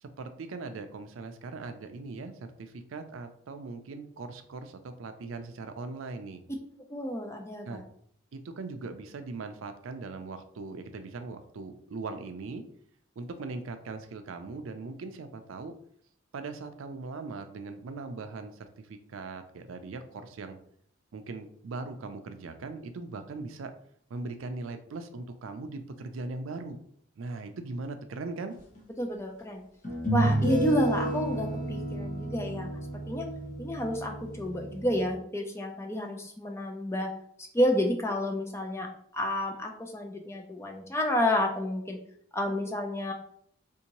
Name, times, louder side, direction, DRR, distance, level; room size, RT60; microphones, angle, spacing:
voice 1, 0.0-6.4 7.6-7.8 8.3-12.6 13.2-15.7 16.3-20.6 21.1-23.7 24.1-26.8 27.2-28.6, right 3 dB, 80° right, 8 dB, 0.4 m, -40 dB
voice 2, 6.9-7.8 29.0-29.6 30.1-32.7 33.1-33.2 33.6-37.1 37.5-38.9 39.1-42.0 42.3-43.1, left 1 dB, 15° left, 3 dB, 0.4 m, -30 dB
sound 1, 28.8-28.9 29.8-35.1, right 1 dB, 40° left, 1.0 m, -31 dB
3.5 x 2.7 x 2.9 m, 0.66 s
head